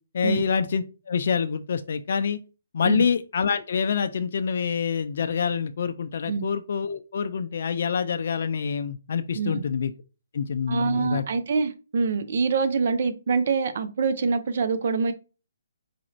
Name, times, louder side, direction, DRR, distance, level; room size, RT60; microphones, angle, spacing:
voice 1, 0.1-2.4 2.7-9.9 10.3-11.2, left 6 dB, 55° left, 0.3 m, -26 dB
voice 2, 10.7-15.1, right 5 dB, 55° right, 0.5 m, -25 dB
4.2 x 2.4 x 3.0 m
figure-of-eight pair, 140°, 0 cm